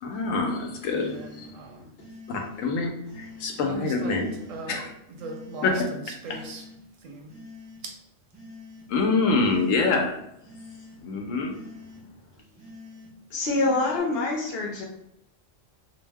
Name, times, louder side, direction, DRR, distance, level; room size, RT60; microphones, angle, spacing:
voice 1, 0.0-1.1 1.4-1.5 2.3-4.3 4.7-4.9 5.6-5.8 8.9-10.1 11.0-11.5, left 3 dB, 85° left, 2 dB, 1.0 m, -25 dB
voice 2, 0.9-1.9 3.6-6.7 7.0-7.4 7.8-8.0 12.4-12.7, right 3 dB, 85° right, 3 dB, 1.0 m, -40 dB
sound 1, 1.0-1.5 2.0-2.5 3.1-3.6 4.1-4.6 5.1-5.7 6.2-6.8 7.3-7.8 8.3-8.8 9.4-9.9 10.4-11.0 11.5-12.0 12.6-13.1 13.6-14.0, left 3 dB, 10° right, 0.6 m, -46 dB
voice 3, 13.3-14.8, left 2 dB, 60° left, -1 dB, 0.8 m, -25 dB
2.3 x 2.1 x 3.3 m, 0.79 s
omnidirectional pair, 1.3 m